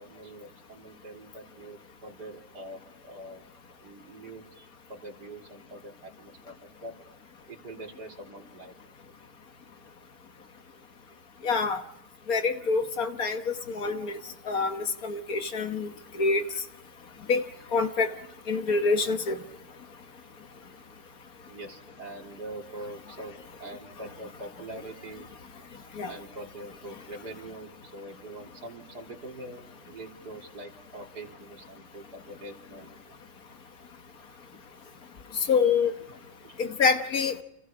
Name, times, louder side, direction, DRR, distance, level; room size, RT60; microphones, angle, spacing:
voice 1, 0.0-3.4 3.8-6.6 6.8-7.0 7.5-8.7 12.8-13.1 16.5-16.6 21.5-25.3 26.1-32.9 36.1-36.2 36.4-36.6, right 2 dB, 70° right, 1 dB, 3.6 m, -44 dB
voice 2, 11.4-11.8 12.3-14.2 14.5-16.4 17.3-17.4 17.7-18.1 18.5-19.4 26.0-26.1 35.5-35.9 36.6-37.3, left 4 dB, 60° left, 7 dB, 1.8 m, -26 dB
29.5 x 27.5 x 4.9 m, 0.88 s
omnidirectional pair, 1.8 m